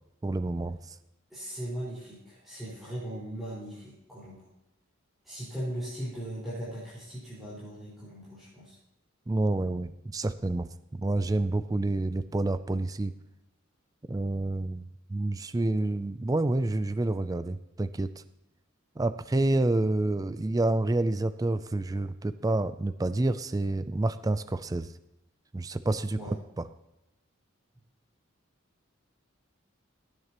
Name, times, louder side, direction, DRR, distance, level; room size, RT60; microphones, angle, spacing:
voice 1, 0.2-1.0 9.3-13.1 14.1-18.1 19.0-24.9 25.5-26.7, right 2 dB, 15° right, 13 dB, 0.3 m, -28 dB
voice 2, 1.3-4.4 5.2-8.7 26.1-26.3, right 1 dB, ahead, -12 dB, 4.9 m, -38 dB
17.5 x 9.6 x 3.0 m, 0.92 s
head